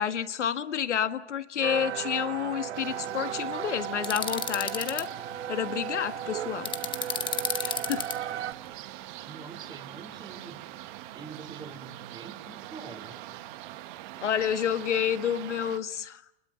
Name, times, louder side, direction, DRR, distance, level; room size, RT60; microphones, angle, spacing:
voice 1, 0.0-5.1 5.5-6.7 7.5-8.1 14.2-16.2, left 9 dB, 80° left, 12 dB, 1.6 m, -29 dB
sound 1, 1.6-8.5, right 10 dB, 70° right, 1.2 m, -35 dB
sound 2, 2.7-15.8, right 15 dB, 45° right, 1.5 m, -44 dB
sound 3, 4.0-5.0 6.6-8.1, left 7 dB, 15° left, 1.1 m, -31 dB
voice 2, 9.3-10.6 11.1-13.2, right 4 dB, 15° right, 5 dB, 3.1 m, -45 dB
29.0 x 21.0 x 9.1 m, 0.78 s
hypercardioid pair, 125°, 35 cm